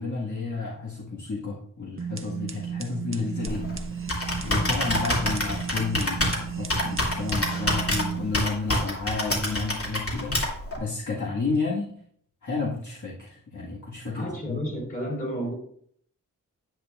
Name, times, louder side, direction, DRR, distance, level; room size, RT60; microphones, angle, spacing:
voice 1, 0.0-11.9 12.4-14.7, left 3 dB, 60° left, -5 dB, 1.8 m, -32 dB
sound 1, 2.0-8.3, right 7 dB, 40° right, 0.7 m, -35 dB
Computer keyboard, 3.5-10.8, left 1 dB, 45° left, 2.6 m, -28 dB
voice 2, 14.1-15.5, equal, 25° left, -2 dB, 4.1 m, -31 dB
9.9 x 9.3 x 2.5 m, 0.63 s
wide cardioid pair, 85°, 33 cm